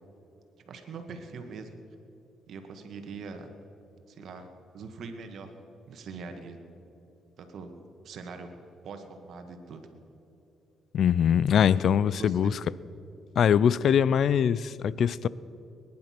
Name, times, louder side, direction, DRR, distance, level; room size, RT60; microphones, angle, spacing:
voice 1, 0.7-1.7 2.5-3.5 4.1-4.5 4.7-5.5 5.9-6.6 7.4-7.7 8.0-8.5 8.8-9.9 12.2-12.6, right 4 dB, 65° right, 6 dB, 2.0 m, -42 dB
voice 2, 10.9-12.6 13.4-15.3, left 8 dB, 65° left, 20 dB, 0.4 m, -22 dB
21.0 x 10.5 x 6.0 m, 2.8 s
cardioid pair, 90°, 0 cm